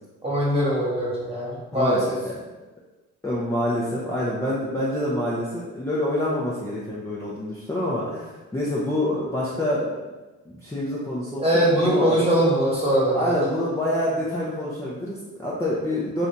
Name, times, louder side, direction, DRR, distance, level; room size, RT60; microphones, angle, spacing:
voice 1, 0.2-2.2 11.4-13.4, right 1 dB, 20° right, -6 dB, 1.3 m, -22 dB
voice 2, 1.7-2.3 3.2-9.9 10.5-12.4 13.1-16.3, left 1 dB, 10° left, -7 dB, 0.6 m, -27 dB
2.7 x 2.6 x 3.4 m, 1.2 s
cardioid pair, 90°, 30 cm